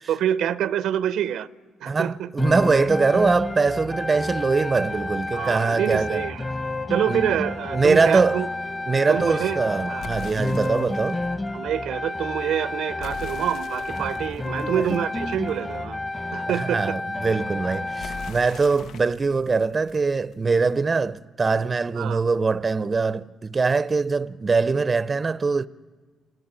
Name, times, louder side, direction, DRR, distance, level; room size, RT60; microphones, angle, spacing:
voice 1, 0.1-1.5 1.8-2.3 5.3-6.4 6.9-8.5 9.1-9.6 9.9-10.1 11.5-16.0 16.3-16.8 22.0-22.2, right 10 dB, 80° right, 0.7 m, -26 dB
voice 2, 1.9-6.3 7.1-7.3 7.7-8.4 8.9-11.2 14.0-14.1 14.6-14.7 16.5-25.7, right 4 dB, 30° right, 0.7 m, -22 dB
sound 1, 2.4-18.4, left 2 dB, 20° left, 1.4 m, -30 dB
sound 2, 10.0-11.2 13.0-15.7 18.0-20.7, left 6 dB, 70° left, 0.9 m, -42 dB
28.5 x 19.0 x 8.9 m
cardioid pair, 90°, 0 cm